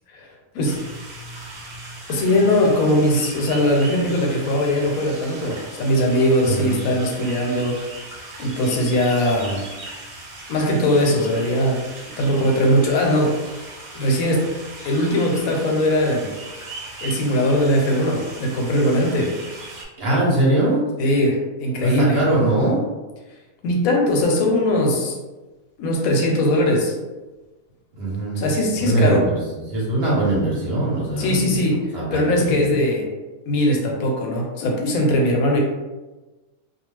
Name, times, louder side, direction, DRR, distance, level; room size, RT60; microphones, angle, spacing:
sound 1, 0.6-19.8, right 2 dB, 80° right, 1.2 m, -38 dB
voice 1, 2.1-7.8 8.4-9.7 10.5-11.8 12.2-13.4 13.9-14.5 14.8-16.3 17.0-19.4 21.0-22.2 23.6-25.2 25.8-26.9 28.4-29.2 31.2-33.1 33.5-35.6, left 1 dB, 80° left, 0 dB, 1.0 m, -20 dB
voice 2, 6.4-6.8 20.0-20.8 21.8-22.8 28.0-28.4 28.8-31.6 31.9-32.7, right 2 dB, 50° right, -6 dB, 1.0 m, -21 dB
2.4 x 2.2 x 3.2 m, 1.2 s
omnidirectional pair, 1.5 m